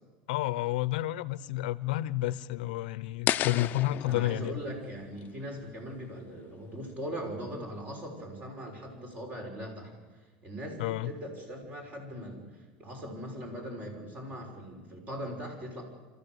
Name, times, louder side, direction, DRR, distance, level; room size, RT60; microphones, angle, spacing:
voice 1, 0.3-4.6 10.8-11.1, left 15 dB, 90° left, 0.8 m, -30 dB
sound 1, 3.3-6.3, left 12 dB, 40° left, 0.7 m, -34 dB
voice 2, 4.0-9.9 10.4-15.8, equal, 35° right, 6.4 m, -40 dB
26.5 x 14.0 x 8.1 m
supercardioid pair, 130°, 5 cm